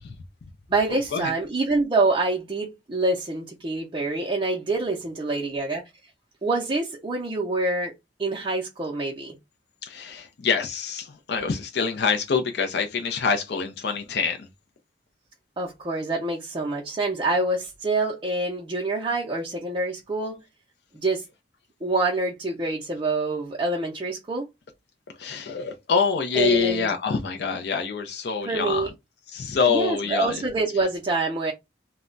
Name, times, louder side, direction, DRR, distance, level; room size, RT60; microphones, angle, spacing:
voice 1, 0.7-5.9 6.4-7.9 8.2-9.4 15.6-20.4 20.9-21.2 21.8-24.5 26.3-26.9 28.4-28.9 29.7-31.5, right 2 dB, 25° right, 0.5 m, -26 dB
voice 2, 9.8-14.5 25.2-28.9 29.3-30.4, left 5 dB, 60° left, 0.4 m, -25 dB
2.2 x 2.0 x 3.7 m
head